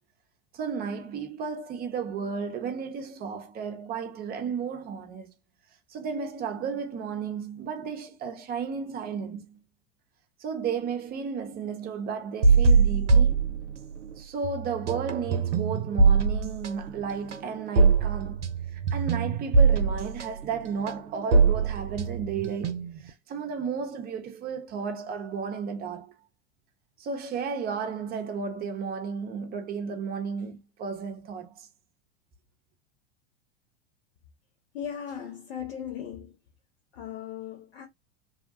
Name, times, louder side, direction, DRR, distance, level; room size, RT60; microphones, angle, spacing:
voice 1, 0.5-5.3 5.9-9.6 10.4-13.4 14.2-18.4 18.7-26.1 27.0-31.7, right 6 dB, 25° right, 0.6 m, -33 dB
sound 1, 12.4-14.1 14.4-23.1, right 4 dB, 85° right, 0.5 m, -23 dB
voice 2, 34.7-36.4 36.9-37.9, left 9 dB, 65° left, 0.7 m, -37 dB
2.7 x 2.1 x 2.6 m
figure-of-eight pair, 85°, 34 cm